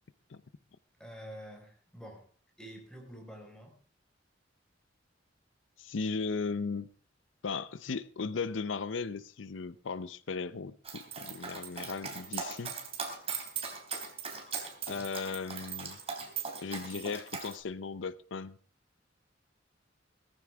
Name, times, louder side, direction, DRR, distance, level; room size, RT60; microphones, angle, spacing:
voice 1, 1.0-2.3 2.6-3.7, equal, 5° left, 4.8 m, -48 dB
voice 2, 5.8-6.9 7.4-12.7 14.9-16.0 16.6-18.6, left 4 dB, 80° left, 0.6 m, -36 dB
Dog, 10.8-17.5, right 6 dB, 35° right, 3.2 m, -39 dB
18.0 x 14.5 x 3.5 m
head